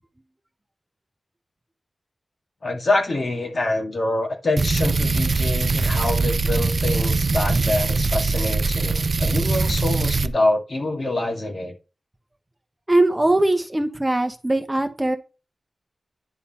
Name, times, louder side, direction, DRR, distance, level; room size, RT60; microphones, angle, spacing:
voice 1, 2.6-11.7, left 2 dB, 55° left, 2.2 m, -25 dB
sound 1, 4.6-10.3, right 3 dB, 55° right, 0.6 m, -22 dB
voice 2, 12.9-15.2, right 2 dB, 15° right, 1.0 m, -20 dB
10.0 x 3.8 x 4.3 m
wide cardioid pair, 95°, 0 cm